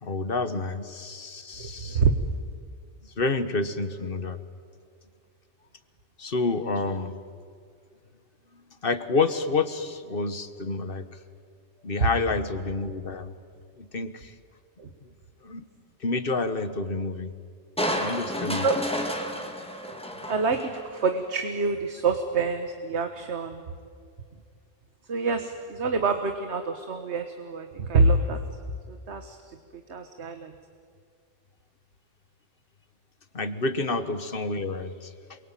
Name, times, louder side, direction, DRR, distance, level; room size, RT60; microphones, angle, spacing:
voice 1, 0.0-2.0 3.2-4.4 6.2-7.2 8.8-11.0 11.8-13.3 13.8-14.3 15.0-15.1 15.4-15.7 16.0-17.3 18.0-18.6 33.3-35.4, left 3 dB, 50° left, 11 dB, 1.5 m, -29 dB
voice 2, 1.6-2.1 12.0-12.1 14.8-14.9 18.6-18.8 20.3-23.6 25.0-28.4 28.9-30.5, right 4 dB, 65° right, 7 dB, 1.6 m, -26 dB
Crushing, 17.8-21.1 21.6-21.7, equal, 5° left, 2.4 m, -31 dB
28.0 x 22.5 x 9.2 m, 2.1 s
omnidirectional pair, 1.3 m